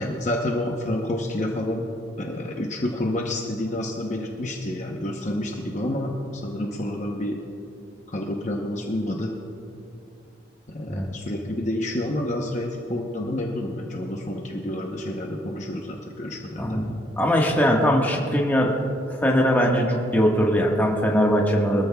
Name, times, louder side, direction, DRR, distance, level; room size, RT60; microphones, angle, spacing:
voice 1, 0.0-1.9 2.2-7.4 8.1-9.3 10.7-16.8, left 1 dB, 40° left, 0 dB, 0.9 m, -29 dB
voice 2, 16.6-18.8 19.2-21.9, equal, 10° left, -2 dB, 1.5 m, -21 dB
22.5 x 13.5 x 2.3 m, 2.6 s
head